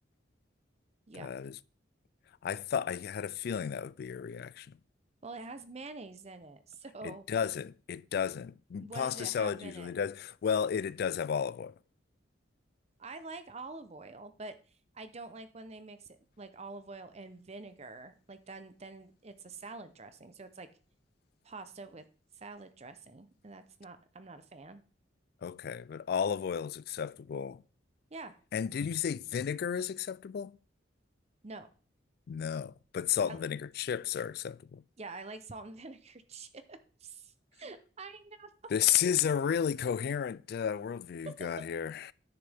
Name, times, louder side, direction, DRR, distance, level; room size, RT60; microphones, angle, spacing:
voice 1, 1.2-1.6 2.4-4.8 7.0-11.7 25.4-27.6 28.5-30.6 32.3-34.8 38.7-42.1, left 8 dB, 55° left, 0.3 m, -33 dB
voice 2, 5.2-7.2 8.8-9.9 13.0-14.5 14.9-20.7 21.4-22.0 22.4-24.8 28.1-28.4 31.4-31.7 33.3-33.4 35.0-38.5, right 3 dB, 35° right, 0.7 m, -46 dB
9.8 x 6.8 x 3.5 m
head